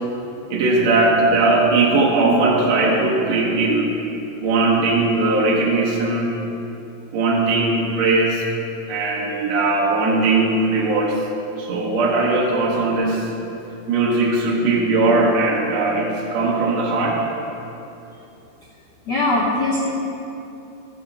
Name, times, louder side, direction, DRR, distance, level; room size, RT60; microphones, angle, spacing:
voice 1, 0.5-3.9 4.4-6.3 7.1-8.4 8.9-11.2 11.6-13.3 13.9-17.2, right 3 dB, 70° right, -3 dB, 2.3 m, -19 dB
voice 2, 19.1-19.9, left 2 dB, 75° left, -3 dB, 1.0 m, -21 dB
13.0 x 6.4 x 5.2 m, 2.8 s
omnidirectional pair, 3.3 m